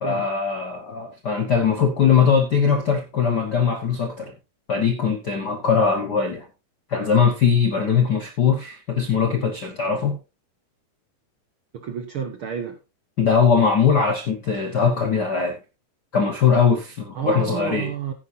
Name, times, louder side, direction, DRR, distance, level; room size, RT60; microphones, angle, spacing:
voice 1, 0.0-4.3 4.7-6.5 6.9-10.2 13.2-15.6 16.1-17.9, left 6 dB, 65° left, 1.0 m, -20 dB
voice 2, 11.7-12.8 17.1-18.1, right 7 dB, 65° right, 1.4 m, -30 dB
15.0 x 9.8 x 2.7 m
omnidirectional pair, 3.7 m